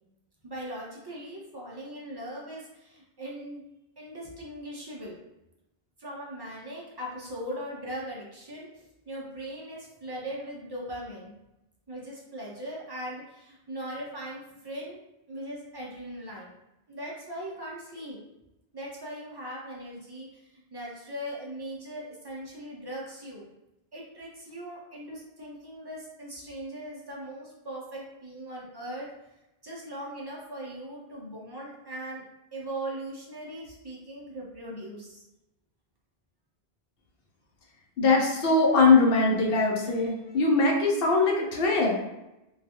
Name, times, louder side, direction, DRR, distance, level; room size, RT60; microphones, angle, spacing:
voice 1, 0.4-3.6 4.0-5.2 6.0-11.3 11.9-15.0 15.3-16.5 16.9-18.2 18.7-23.4 23.9-29.1 29.6-32.2 32.5-35.2, right 1 dB, 40° right, -5 dB, 0.3 m, -39 dB
voice 2, 38.0-41.9, left 3 dB, 70° left, 0 dB, 0.8 m, -22 dB
2.3 x 2.3 x 2.7 m, 0.93 s
omnidirectional pair, 1.1 m